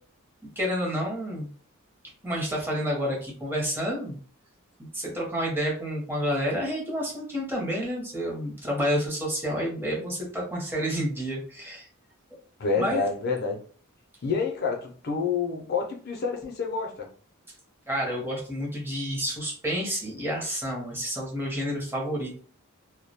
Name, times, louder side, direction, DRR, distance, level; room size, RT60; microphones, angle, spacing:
voice 1, 0.6-1.5 2.2-4.2 4.9-11.9 12.8-13.0 17.9-22.4, equal, 10° right, -2 dB, 0.7 m, -29 dB
voice 2, 12.6-13.6 14.2-17.1, left 4 dB, 50° left, 2 dB, 0.5 m, -28 dB
2.2 x 2.1 x 2.7 m, 0.43 s
head